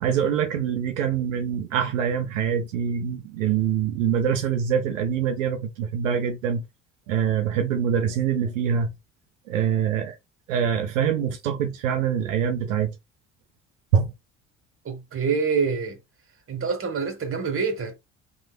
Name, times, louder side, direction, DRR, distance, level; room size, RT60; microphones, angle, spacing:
voice 1, 0.0-6.6 7.1-8.9 9.5-10.2 10.5-12.9 13.9-14.1, right 8 dB, 85° right, 0.5 m, -24 dB
voice 2, 14.8-16.0 16.5-17.9, right 5 dB, 35° right, 1.1 m, -26 dB
3.2 x 2.1 x 2.4 m
hypercardioid pair, 55°, 38 cm